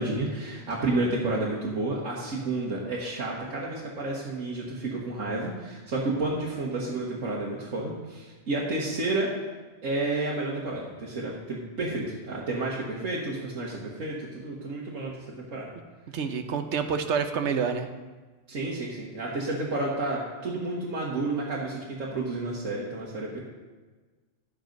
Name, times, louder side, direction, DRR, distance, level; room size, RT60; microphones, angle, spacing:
voice 1, 0.0-9.3 9.8-15.7 18.5-23.4, right 2 dB, 90° right, -5 dB, 1.8 m, -31 dB
voice 2, 16.1-17.9, right 6 dB, 70° right, 8 dB, 1.1 m, -27 dB
11.0 x 7.8 x 5.3 m, 1.3 s
omnidirectional pair, 1.3 m